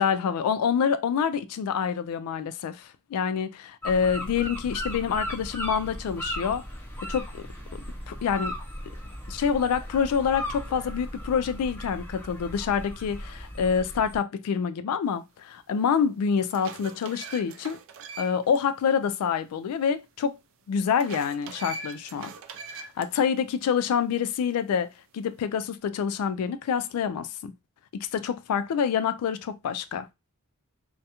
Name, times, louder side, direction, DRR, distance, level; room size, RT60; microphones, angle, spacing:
voice 1, 0.0-6.6 7.0-7.5 7.7-7.8 8.1-8.5 9.3-17.8 18.2-20.4 20.7-22.3 22.7-27.5 27.9-30.1, left 7 dB, 80° left, 0.3 m, -27 dB
sound 1, 3.8-14.2, equal, 10° left, 0.5 m, -37 dB
sound 2, 15.6-15.7 16.2-18.6 18.9-19.0 21.0-23.1, right 4 dB, 60° right, 0.3 m, -41 dB
2.3 x 2.1 x 2.8 m
head